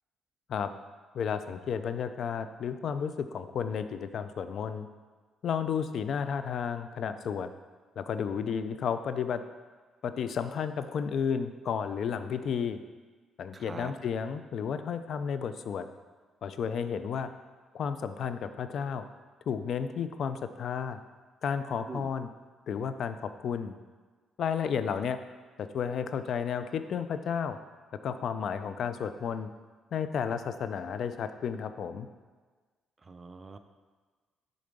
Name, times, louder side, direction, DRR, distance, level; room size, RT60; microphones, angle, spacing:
voice 1, 1.1-4.9 5.4-7.5 8.0-9.4 10.0-12.8 13.4-15.9 16.4-17.3 17.7-19.0 19.5-21.0 21.4-22.3 22.7-23.7 24.4-25.2 25.6-27.6 28.0-29.5 29.9-32.1, left 7 dB, 65° left, 10 dB, 0.4 m, -32 dB
voice 2, 13.5-13.9 21.9-22.1 33.0-33.6, right 4 dB, 30° right, 8 dB, 0.4 m, -43 dB
6.8 x 3.9 x 5.2 m, 1.4 s
cardioid pair, 90°, 0 cm